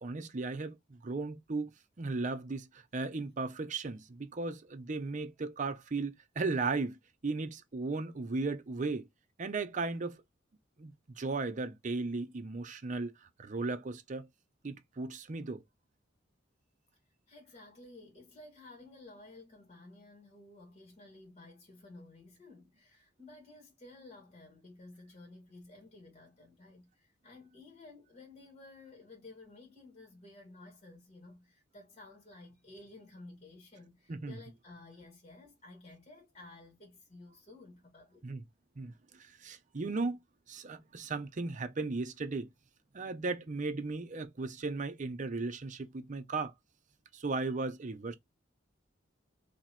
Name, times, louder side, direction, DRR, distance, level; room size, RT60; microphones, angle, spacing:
voice 1, 0.0-1.7 2.0-9.1 9.4-10.2 10.8-14.3 14.6-15.6 34.1-34.4 38.2-38.4 38.8-40.2 40.5-42.5 42.9-46.5 47.1-48.1, right 3 dB, 40° right, 0.6 m, -36 dB
voice 2, 17.3-38.3, left 2 dB, 35° left, 1.7 m, -54 dB
2.9 x 2.8 x 4.1 m
head